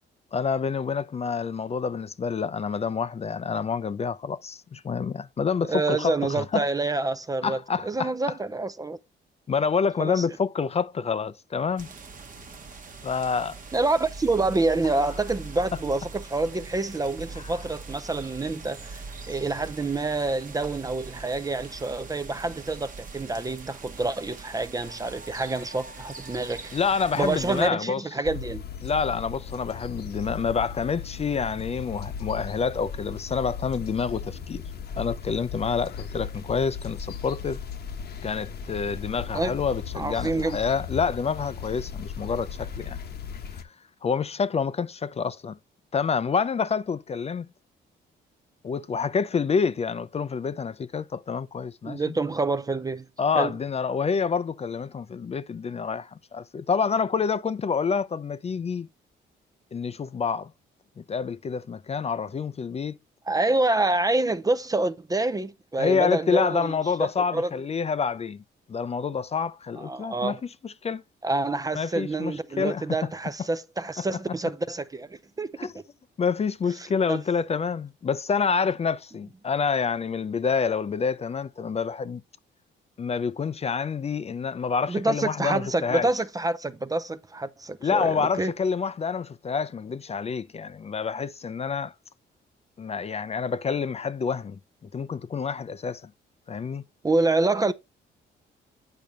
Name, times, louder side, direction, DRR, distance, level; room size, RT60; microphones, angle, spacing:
voice 1, 0.3-6.6 7.4-8.1 9.5-11.9 13.0-13.6 26.7-28.0 28.8-34.6 35.0-37.6 38.2-43.0 43.5-43.6 44.0-45.6 45.9-47.5 48.6-52.0 53.2-58.9 59.7-60.5 61.0-63.0 65.8-68.4 68.7-70.4 70.6-71.0 71.7-73.1 74.0-74.1 75.6-75.7 76.2-82.2 83.0-86.1 87.8-91.9 92.8-94.6 94.9-96.1 96.5-96.8, left 5 dB, 30° left, 0.5 m, -27 dB
voice 2, 5.7-9.0 10.0-10.2 13.7-26.8 27.1-28.6 39.3-39.6 39.9-40.6 51.8-53.1 53.3-53.5 63.3-66.7 67.0-67.5 69.8-70.4 71.2-75.7 77.1-77.2 84.9-88.5 97.0-97.7, right 2 dB, 20° right, 0.5 m, -27 dB
sound 1, 11.8-27.7, right 3 dB, 40° right, 1.1 m, -42 dB
sound 2, 28.2-43.6, left 7 dB, 55° left, 1.0 m, -37 dB
8.7 x 5.2 x 3.1 m
cardioid pair, 90°, 20 cm